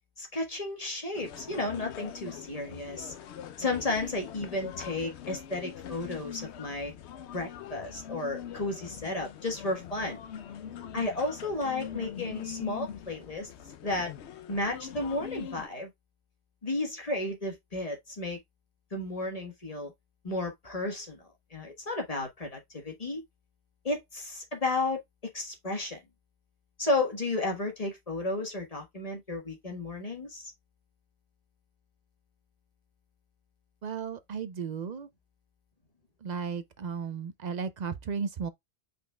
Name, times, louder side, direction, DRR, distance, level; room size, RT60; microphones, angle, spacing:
voice 1, 0.2-3.1 3.6-6.9 7.3-10.2 10.9-13.5 13.8-14.1 14.5-15.9 16.6-18.4 18.9-19.9 20.2-21.2 21.5-23.2 23.8-25.0 25.3-26.0 26.8-30.5, left 2 dB, 35° left, 1.4 m, -33 dB
sound 1, 1.1-15.7, left 9 dB, 85° left, 0.9 m, -42 dB
voice 2, 33.8-35.1 36.2-38.5, right 6 dB, 50° right, 0.5 m, -35 dB
5.4 x 4.0 x 2.2 m
omnidirectional pair, 1.1 m